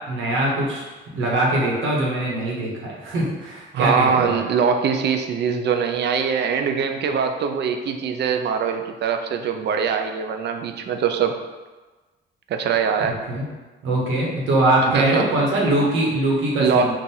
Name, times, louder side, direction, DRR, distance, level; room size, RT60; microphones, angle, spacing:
voice 1, 0.1-0.9 1.1-2.7 3.0-4.4 13.3-13.4 13.8-16.9, right 1 dB, 80° right, -3 dB, 1.2 m, -22 dB
voice 2, 3.7-11.4 12.5-13.2 14.9-15.4 16.6-16.9, right 6 dB, 60° right, 6 dB, 0.5 m, -22 dB
3.8 x 2.5 x 4.3 m, 1.2 s
cardioid pair, 90°, 20 cm